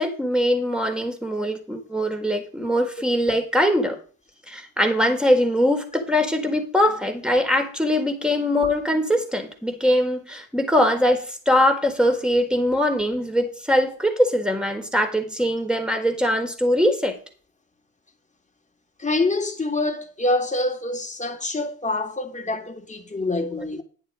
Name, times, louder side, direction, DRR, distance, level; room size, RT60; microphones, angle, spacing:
voice 1, 0.0-4.0 4.5-17.1, equal, ahead, 4.2 m, -22 dB
voice 2, 19.0-23.8, left 2 dB, 15° left, 3.1 m, -26 dB
11.0 x 8.9 x 5.3 m
hypercardioid pair, 65°, 41 cm